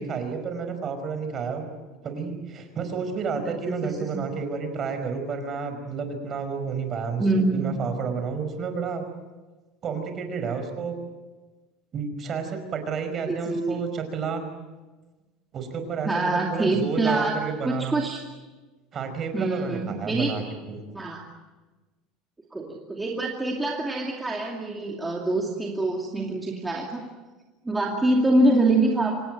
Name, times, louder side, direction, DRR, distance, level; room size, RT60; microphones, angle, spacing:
voice 1, 0.0-1.7 2.0-9.0 9.8-11.0 11.9-14.5 15.5-18.0 18.9-20.8, right 5 dB, 35° right, 7 dB, 5.1 m, -31 dB
voice 2, 7.2-7.7 13.3-13.8 16.0-18.2 19.3-20.3 20.9-21.2 22.5-27.1 27.6-29.2, right 2 dB, 10° right, -1 dB, 2.5 m, -25 dB
26.0 x 19.0 x 9.2 m, 1.2 s
cardioid pair, 140°, 0 cm